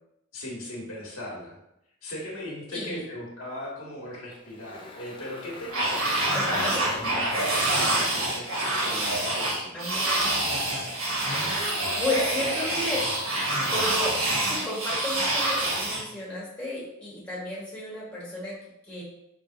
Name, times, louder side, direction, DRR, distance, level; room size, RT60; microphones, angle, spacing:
voice 1, 0.3-1.6 2.0-9.8, left 1 dB, 80° left, -3 dB, 1.3 m, -39 dB
voice 2, 2.7-3.0 6.3-6.8 9.7-10.4 12.0-13.1 13.5-18.5 18.9-19.0, left 1 dB, 5° left, -6 dB, 1.3 m, -33 dB
Engine, 4.3-9.6, left 2 dB, 25° left, 0.5 m, -44 dB
sound 1, 5.7-16.0, right 1 dB, 90° right, 1.4 m, -26 dB
4.8 x 3.3 x 2.6 m, 0.81 s
head